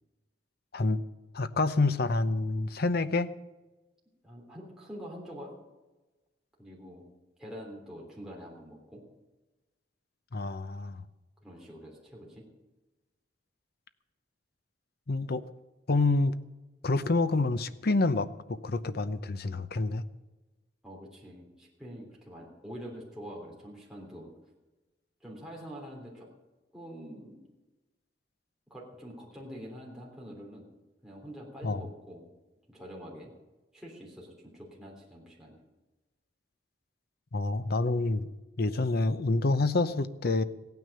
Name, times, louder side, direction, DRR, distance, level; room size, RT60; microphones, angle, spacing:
voice 1, 1.3-3.3 10.3-11.0 15.1-15.4 15.9-16.3 16.8-20.0 31.6-31.9 37.3-38.3 38.6-40.4, left 3 dB, 60° left, 13 dB, 0.7 m, -27 dB
voice 2, 4.2-5.5 6.6-7.0 7.4-9.0 11.4-12.5 20.8-24.3 25.2-26.3 26.7-27.4 28.7-30.7 31.0-32.2 32.7-33.3 33.7-35.6, equal, 5° right, -4 dB, 3.4 m, -45 dB
16.0 x 9.5 x 6.8 m, 1.1 s
head